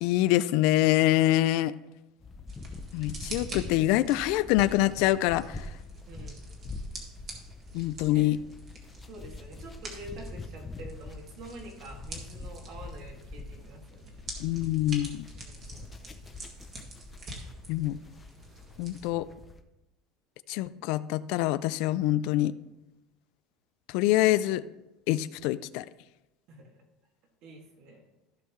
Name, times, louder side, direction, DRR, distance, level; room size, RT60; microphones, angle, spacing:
voice 1, 0.0-1.7 2.9-5.7 7.7-8.4 14.4-15.2 17.7-18.0 18.8-19.3 20.5-22.5 23.9-24.6 25.1-25.9, left 15 dB, 60° left, 16 dB, 0.3 m, -25 dB
sound 1, 2.2-19.6, left 3 dB, 15° left, 0.6 m, -44 dB
sound 2, 2.5-19.1, right 2 dB, 30° right, 1.9 m, -47 dB
voice 2, 6.1-6.4 8.0-8.3 9.0-14.1 15.4-16.2 26.5-26.7 27.4-28.0, right 1 dB, 55° right, 0 dB, 2.3 m, -47 dB
15.0 x 5.7 x 3.1 m, 0.95 s
cardioid pair, 160°, 0 cm